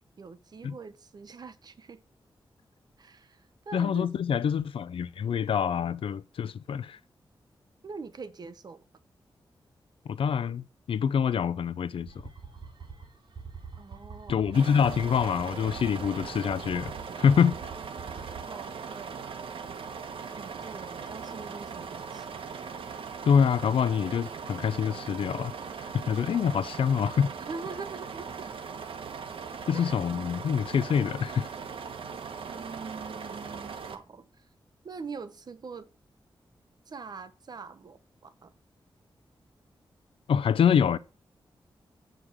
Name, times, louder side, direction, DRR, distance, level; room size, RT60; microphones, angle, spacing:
voice 1, 0.2-2.0 3.0-4.1 7.8-8.8 13.8-14.4 18.5-19.4 20.3-22.3 27.5-28.6 29.7-30.1 32.5-34.5 34.8-35.9 36.9-38.5, right 4 dB, 50° right, 0.9 m, -43 dB
voice 2, 3.7-7.0 10.1-12.1 14.3-16.9 17.2-17.5 23.2-25.5 25.9-27.3 29.7-31.5 40.3-41.0, left 7 dB, 85° left, 0.6 m, -25 dB
sound 1, 12.1-18.7, right 5 dB, 65° right, 3.0 m, -45 dB
sound 2, 14.5-34.0, right 6 dB, 85° right, 1.2 m, -40 dB
8.0 x 5.1 x 7.4 m
wide cardioid pair, 140°, 9 cm